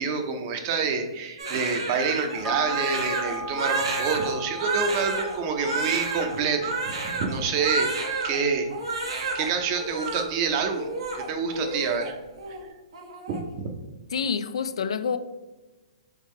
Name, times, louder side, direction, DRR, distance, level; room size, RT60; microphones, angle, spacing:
voice 1, 0.0-7.9 8.2-8.7 9.3-10.9 11.1-12.2 13.3-13.7, right 5 dB, 40° right, 0.6 m, -27 dB
Crying sobbing, 1.4-8.4 8.7-9.5 9.7-10.2 10.7-12.1 12.4-12.6 12.9-13.4, right 3 dB, 80° right, 0.9 m, -30 dB
sound 1, 2.4-11.2 11.6-11.7, right 1 dB, ahead, 0.6 m, -38 dB
voice 2, 14.1-15.2, left 6 dB, 80° left, 0.3 m, -27 dB
3.6 x 3.6 x 3.1 m
hypercardioid pair, 135°, 3 cm